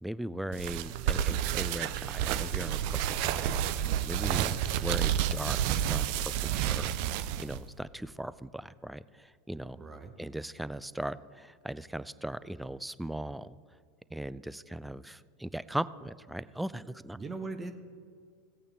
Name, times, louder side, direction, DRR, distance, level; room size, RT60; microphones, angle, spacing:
voice 1, 0.0-2.8 3.1-3.6 4.0-5.6 5.9-6.9 7.4-9.8 10.2-13.5 14.1-17.2, right 1 dB, 5° right, 17 dB, 0.4 m, -38 dB
sound 1, 0.5-7.6, right 10 dB, 55° right, 0.5 m, -30 dB
voice 2, 9.8-10.1 17.1-17.7, right 3 dB, 20° right, 8 dB, 0.9 m, -39 dB
16.0 x 8.7 x 3.4 m, 2.1 s
hypercardioid pair, 85°, 0 cm